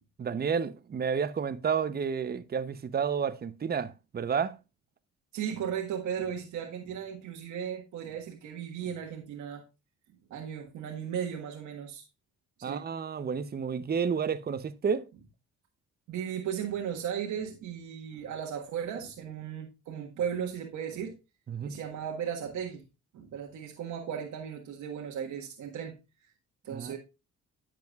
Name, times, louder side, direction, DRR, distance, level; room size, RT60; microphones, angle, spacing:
voice 1, 0.2-4.5 12.6-15.1 21.5-21.8 26.7-26.9, right 6 dB, 30° right, 0.8 m, -31 dB
voice 2, 5.3-9.6 10.3-12.0 12.6-12.8 16.1-21.2 21.6-22.8 23.1-26.0 26.6-27.0, right 8 dB, 80° right, 1.6 m, -36 dB
10.5 x 7.6 x 2.4 m
cardioid pair, 90°, 30 cm